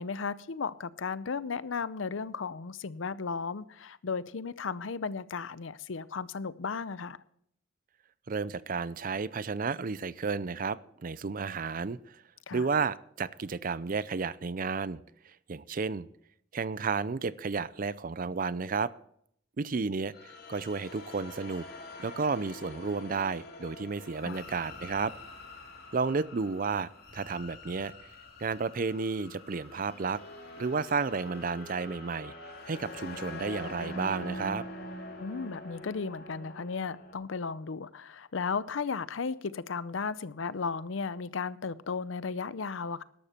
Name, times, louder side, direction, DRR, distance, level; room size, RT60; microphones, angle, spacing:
voice 1, 0.0-7.2 12.5-12.7 24.2-24.4 35.2-43.0, left 5 dB, 80° left, 0.6 m, -35 dB
voice 2, 8.3-12.2 12.5-15.0 15.5-16.1 16.5-18.9 19.6-21.7 22.0-25.1 25.9-27.9 28.4-30.2 30.6-32.3 32.7-34.6, right 4 dB, 45° right, 0.5 m, -32 dB
sound 1, 20.1-37.1, left 1 dB, 55° left, 2.5 m, -45 dB
13.5 x 12.0 x 4.4 m
head